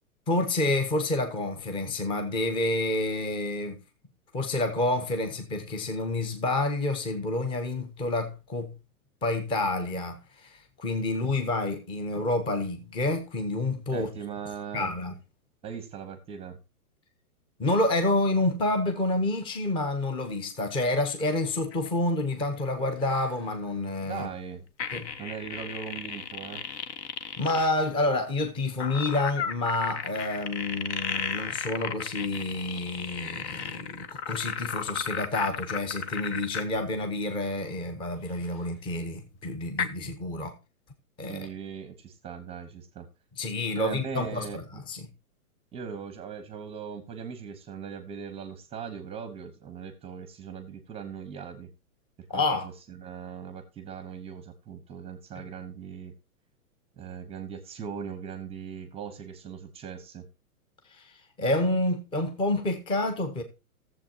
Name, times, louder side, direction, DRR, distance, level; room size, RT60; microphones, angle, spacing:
voice 1, 0.3-3.8 4.3-8.7 9.2-14.1 14.7-15.1 17.6-24.3 24.9-25.1 27.4-40.6 41.2-41.5 43.4-45.1 52.3-52.7 60.9-63.4, left 2 dB, 10° left, 0.9 m, -28 dB
voice 2, 13.9-14.9 15.6-16.6 24.0-24.6 25.2-26.6 41.3-43.1 43.8-44.6 45.7-51.7 52.3-56.1 57.0-60.2, right 7 dB, 15° right, 0.9 m, -39 dB
sound 1, 21.7-21.9 22.3-22.4 23.0-23.3 24.8-27.7 28.8-36.8 38.9-39.0 39.8-39.9, left 7 dB, 50° left, 1.0 m, -34 dB
14.0 x 7.4 x 2.9 m
hypercardioid pair, 145°, 45 cm